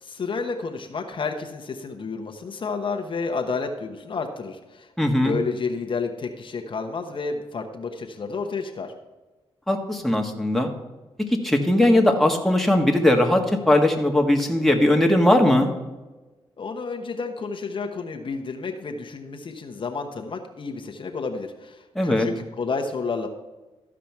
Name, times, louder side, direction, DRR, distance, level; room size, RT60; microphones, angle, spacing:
voice 1, 0.0-8.9 16.6-23.3, left 4 dB, 55° left, 3 dB, 1.1 m, -30 dB
voice 2, 5.0-5.3 9.7-10.7 11.4-15.7 21.9-22.3, left 1 dB, ahead, 2 dB, 1.6 m, -19 dB
13.5 x 5.0 x 6.0 m, 1.2 s
cardioid pair, 80°, 10 cm